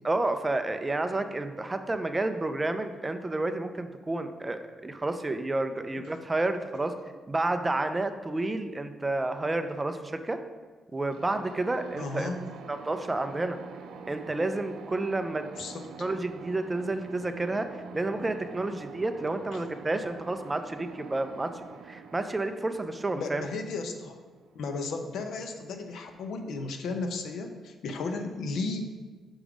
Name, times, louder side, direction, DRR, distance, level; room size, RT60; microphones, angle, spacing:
voice 1, 0.0-6.9 7.3-10.4 10.9-12.3 12.7-13.6 14.1-15.5 16.0-17.7 17.9-23.4, right 2 dB, 15° right, 8 dB, 0.3 m, -30 dB
sound 1, 11.1-24.8, right 5 dB, 75° right, 0.5 m, -46 dB
voice 2, 12.0-12.4 15.6-15.9 19.5-19.6 23.2-24.2 24.5-28.9, left 3 dB, 65° left, 6 dB, 0.7 m, -34 dB
6.2 x 5.0 x 4.9 m, 1.4 s
cardioid pair, 175°, 0 cm